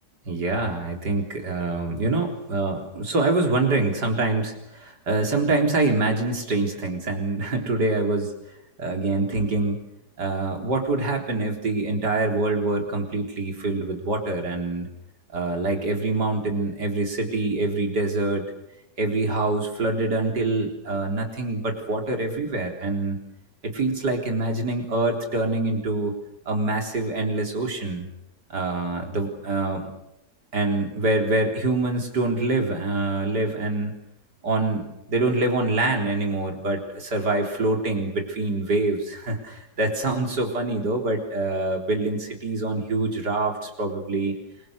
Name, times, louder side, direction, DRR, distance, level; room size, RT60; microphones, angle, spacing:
voice 1, 0.3-8.3 8.8-9.8 10.2-14.9 15.3-18.4 19.0-23.2 23.6-26.1 26.5-28.1 28.5-29.9 30.5-33.9 34.4-44.4, right 2 dB, 80° right, 3 dB, 4.4 m, -25 dB
28.0 x 23.5 x 6.6 m, 0.85 s
omnidirectional pair, 1.8 m